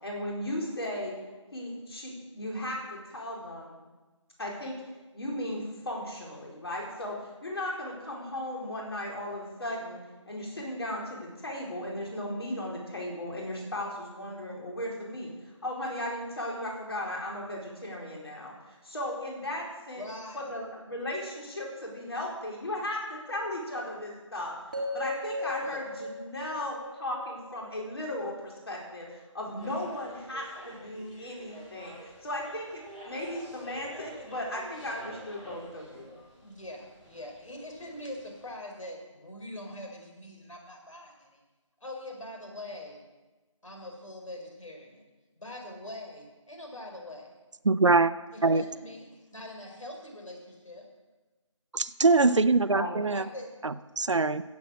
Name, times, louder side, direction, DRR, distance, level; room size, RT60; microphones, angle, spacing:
voice 1, 0.0-1.2 1.5-3.8 4.4-4.8 5.1-10.0 10.3-20.0 20.3-21.6 21.9-36.1 52.7-52.9, left 1 dB, 50° left, -2 dB, 4.4 m, -36 dB
voice 2, 19.9-20.6 25.4-25.8 36.4-41.4 41.8-43.0 43.6-45.1 45.4-47.4 48.3-50.9 53.0-53.5, left 1 dB, 80° left, 1 dB, 4.7 m, -43 dB
sound 1, 24.7-28.8, left 1 dB, 15° right, 1.4 m, -37 dB
sound 2, 29.6-38.5, right 1 dB, 10° left, 4.2 m, -49 dB
voice 3, 47.6-48.1 48.4-48.6 51.7-53.2 53.6-54.4, right 3 dB, 65° right, 14 dB, 0.7 m, -23 dB
15.5 x 8.3 x 6.4 m, 1.2 s
figure-of-eight pair, 170°, 16 cm